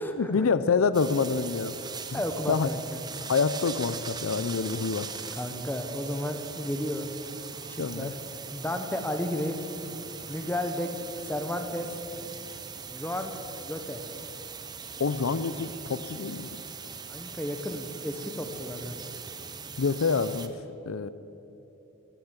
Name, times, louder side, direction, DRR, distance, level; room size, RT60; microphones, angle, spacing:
voice 1, 0.0-1.8 2.1-2.2 2.5-2.7 3.3-5.1 7.8-8.1 15.0-16.5 19.8-20.5 20.9-21.1, left 5 dB, 90° left, 14 dB, 0.5 m, -27 dB
sound 1, 0.9-20.5, right 6 dB, 20° right, 0.6 m, -40 dB
voice 2, 2.1-2.8 5.4-7.1 7.7-8.1 8.5-9.6 10.3-10.9 11.2-12.0 12.9-14.0 17.1-18.9, left 1 dB, 10° left, 6 dB, 1.0 m, -33 dB
13.5 x 13.0 x 7.4 m, 3.0 s
head